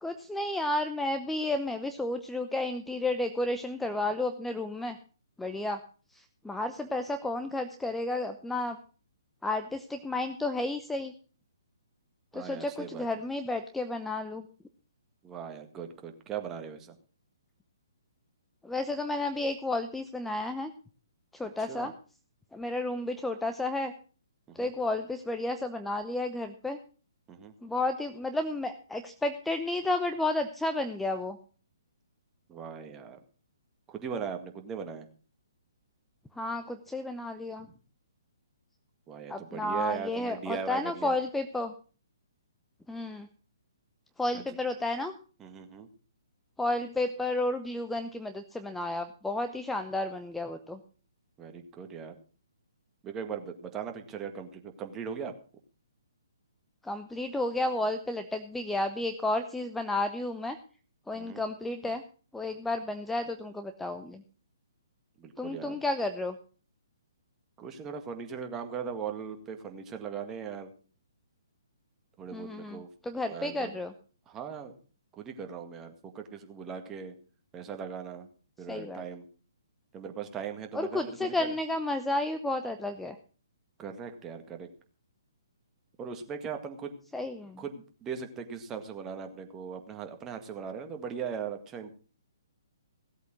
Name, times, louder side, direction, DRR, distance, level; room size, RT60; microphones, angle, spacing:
voice 1, 0.0-5.0 5.4-5.8 6.1-8.8 9.4-11.1 12.3-14.5 18.6-20.7 21.3-21.9 22.5-23.9 24.5-26.8 27.6-31.4 36.4-37.7 39.3-41.7 42.9-43.3 44.2-45.1 46.6-50.8 56.8-60.6 61.1-62.0 62.3-64.2 65.4-66.3 72.3-73.9 78.7-79.0 80.7-83.2 87.1-87.6, left 2 dB, 5° left, 8 dB, 0.8 m, -32 dB
voice 2, 12.3-13.1 15.2-17.0 21.6-21.9 24.5-24.7 27.3-27.5 32.5-33.2 33.9-35.1 37.6-37.7 39.1-41.2 44.3-44.6 45.4-45.9 51.4-52.2 53.0-55.3 61.1-61.4 65.2-65.8 67.6-70.7 72.2-72.9 73.3-73.8 74.3-74.7 75.2-77.2 77.5-78.3 78.6-79.3 79.9-81.5 83.8-84.7 86.0-86.9 87.6-91.9, right 7 dB, 15° right, 5 dB, 1.9 m, -39 dB
17.0 x 8.2 x 6.2 m, 0.39 s
figure-of-eight pair, 130°, 2 cm